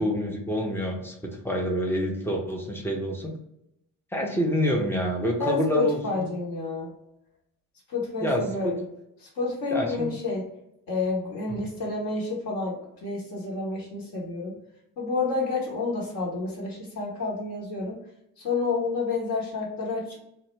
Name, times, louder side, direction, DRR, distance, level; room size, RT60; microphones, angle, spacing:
voice 1, 0.0-3.3 4.1-6.3 8.2-8.7 9.7-10.1 11.5-11.6, equal, 5° left, 0 dB, 0.4 m, -27 dB
voice 2, 5.4-6.9 7.9-8.8 9.2-10.5 10.9-12.8 13.0-14.5 15.0-18.0 18.4-20.2, left 3 dB, 50° left, -3 dB, 0.8 m, -29 dB
2.1 x 2.0 x 3.1 m, 0.81 s
figure-of-eight pair, 50°, 47 cm